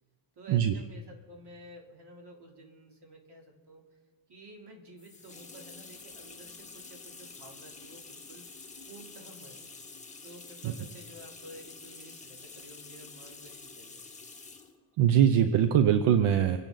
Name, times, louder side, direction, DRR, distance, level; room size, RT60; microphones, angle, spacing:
voice 1, 0.3-3.8 4.3-8.4 8.9-9.7 10.2-14.0, right 1 dB, 50° right, 1 dB, 3.3 m, -51 dB
sound 1, 5.0-14.8, left 4 dB, 15° left, 1.9 m, -48 dB
voice 2, 15.0-16.6, right 9 dB, 75° right, 9 dB, 0.9 m, -22 dB
26.5 x 11.0 x 4.0 m, 1.5 s
cardioid pair, 110°, 50 cm